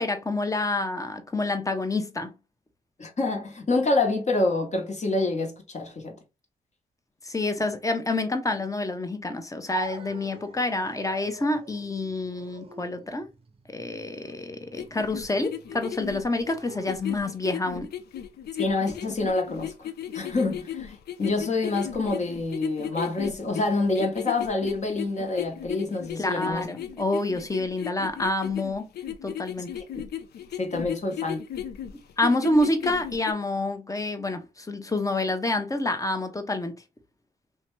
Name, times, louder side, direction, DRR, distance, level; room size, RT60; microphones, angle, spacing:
voice 1, 0.0-2.3 7.2-13.3 13.7-17.9 26.2-28.9 29.2-29.7 32.2-36.7, left 2 dB, 20° left, 0.7 m, -28 dB
voice 2, 3.0-6.2 18.6-26.7 30.6-31.5, left 2 dB, 40° left, 1.0 m, -27 dB
sound 1, 9.7-17.6, right 4 dB, 35° right, 0.7 m, -43 dB
sound 2, 14.7-33.3, left 10 dB, 70° left, 0.4 m, -36 dB
2.8 x 2.2 x 3.1 m
supercardioid pair, 50°, 17 cm